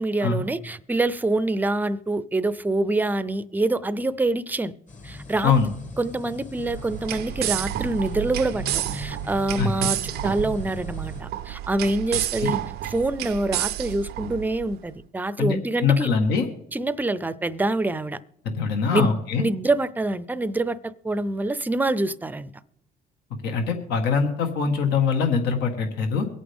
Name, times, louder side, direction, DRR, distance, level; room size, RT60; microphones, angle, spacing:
voice 1, 0.0-4.7 5.0-5.5 6.0-16.1 16.7-18.2 18.9-22.5, right 2 dB, 10° right, 0.5 m, -26 dB
sound 1, 4.9-11.2, left 2 dB, 45° left, 1.8 m, -40 dB
sound 2, 6.6-14.8, right 13 dB, 70° right, 0.5 m, -30 dB
voice 2, 9.6-9.9 12.4-12.5 15.4-16.5 18.4-19.4 23.4-26.3, left 5 dB, 80° left, 1.7 m, -23 dB
23.5 x 8.6 x 3.6 m
cardioid pair, 110°, 17 cm